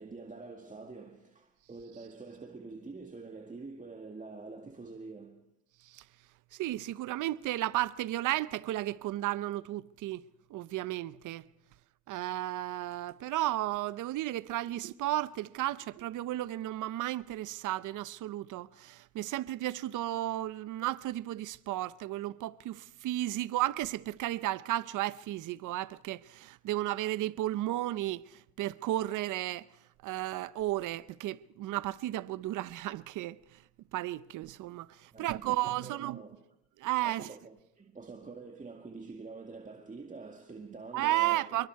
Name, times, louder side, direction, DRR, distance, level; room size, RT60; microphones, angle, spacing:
voice 1, 0.0-5.5 35.1-36.4 37.0-41.7, right 4 dB, 25° right, 2.0 m, -46 dB
voice 2, 6.5-10.2 10.5-11.5 12.1-29.7 30.0-33.6 33.9-36.2 36.8-37.3 40.9-41.7, right 15 dB, 85° right, 0.7 m, -33 dB
26.5 x 23.0 x 4.7 m
cardioid pair, 90°, 30 cm